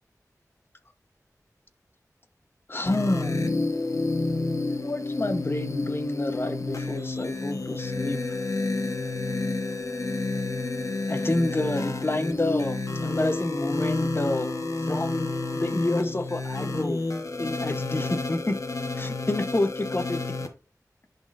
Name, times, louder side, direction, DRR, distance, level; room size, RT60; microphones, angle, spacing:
voice 1, 2.7-3.5 4.7-8.2 11.1-14.6 14.9-17.0 17.4-18.6 19.0-20.2, left 2 dB, 35° left, 1.0 m, -28 dB
sound 1, 2.9-20.5, left 2 dB, 55° left, 1.2 m, -30 dB
10.5 x 4.1 x 2.6 m
wide cardioid pair, 65°, 6 cm